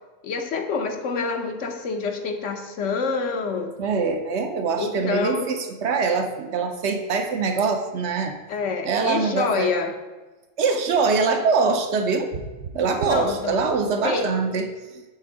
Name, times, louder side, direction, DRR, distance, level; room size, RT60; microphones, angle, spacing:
voice 1, 0.2-3.7 4.8-5.5 8.5-9.9 13.1-13.6 14.0-14.3, left 4 dB, 70° left, 5 dB, 1.0 m, -27 dB
voice 2, 3.8-8.4 8.8-9.7 10.6-12.4 12.7-14.7, right 4 dB, 65° right, 6 dB, 0.8 m, -23 dB
7.7 x 3.6 x 4.7 m, 1.2 s
omnidirectional pair, 1.4 m